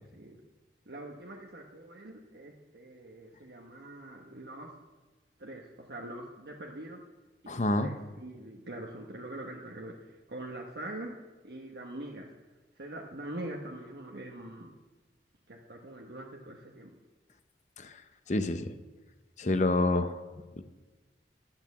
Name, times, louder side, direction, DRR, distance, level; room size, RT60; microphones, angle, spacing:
voice 1, 0.9-4.7 5.4-7.0 7.4-11.2 11.4-12.3 12.8-14.7 15.5-16.9, right 1 dB, 75° right, -1 dB, 1.1 m, -43 dB
voice 2, 7.5-7.9 18.3-18.6 19.4-20.1, left 2 dB, 40° left, 9 dB, 0.7 m, -27 dB
10.5 x 8.8 x 7.1 m, 1.2 s
head